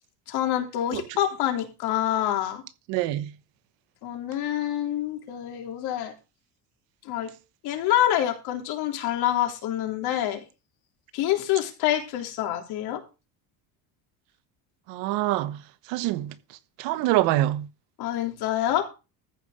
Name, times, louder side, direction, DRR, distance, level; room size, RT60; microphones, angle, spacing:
voice 1, 0.3-2.6 4.0-6.1 7.1-7.3 7.6-10.4 11.1-13.0 18.0-18.8, left 12 dB, 65° left, 3.5 m, -26 dB
voice 2, 2.9-3.3 14.9-15.6 15.9-16.3 16.8-17.7, right 15 dB, 85° right, 1.3 m, -25 dB
14.5 x 5.1 x 6.8 m
cardioid pair, 165°, 42 cm